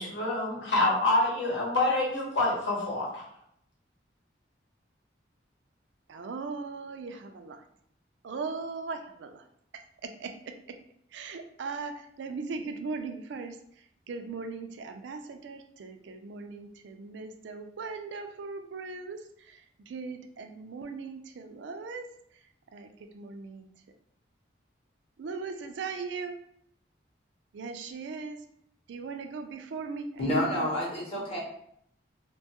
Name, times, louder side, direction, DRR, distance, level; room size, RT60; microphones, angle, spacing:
voice 1, 0.0-3.2, left 2 dB, 75° left, -3 dB, 0.9 m, -27 dB
voice 2, 6.1-7.6 8.2-9.4 10.0-10.8 11.1-22.1 22.7-23.7 25.2-26.4 27.5-28.4 28.9-30.8, right 4 dB, 70° right, 6 dB, 0.3 m, -39 dB
voice 3, 30.2-31.4, left 1 dB, 30° left, -4 dB, 0.8 m, -29 dB
2.7 x 2.2 x 2.8 m, 0.71 s
head